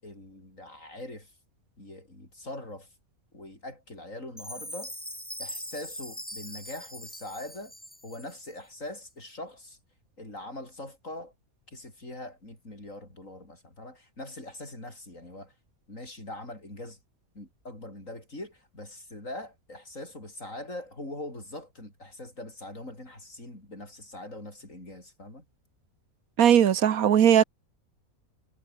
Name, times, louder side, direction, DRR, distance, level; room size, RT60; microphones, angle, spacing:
voice 1, 0.0-1.3 1.8-2.9 3.3-4.9 5.4-7.7 8.0-9.8 10.2-11.3 11.7-15.5 15.9-17.0 17.3-25.4, left 1 dB, 65° left, 8.3 m, -42 dB
Chime, 4.4-8.6, equal, 5° left, 3.9 m, -41 dB
voice 2, 26.4-27.4, right 9 dB, 85° right, 1.5 m, -19 dB
omnidirectional pair, 1.5 m